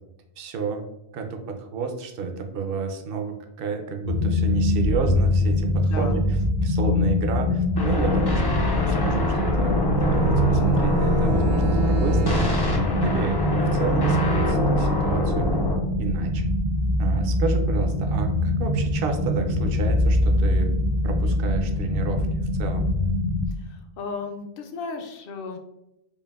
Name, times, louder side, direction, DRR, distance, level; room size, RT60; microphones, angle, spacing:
voice 1, 0.4-0.8 1.1-6.2 6.6-12.6 13.0-15.6 16.0-16.4 17.0-22.3 22.6-22.9, right 5 dB, 65° right, 4 dB, 0.7 m, -31 dB
sound 1, 4.0-23.4, left 1 dB, 80° left, 2.0 m, -23 dB
sound 2, 7.8-15.8, left 1 dB, 35° left, 0.4 m, -25 dB
Bowed string instrument, 9.3-12.7, right 8 dB, 90° right, 1.1 m, -32 dB
voice 2, 23.5-25.6, left 4 dB, 65° left, 4 dB, 0.7 m, -35 dB
5.1 x 2.5 x 2.3 m, 0.86 s
omnidirectional pair, 1.1 m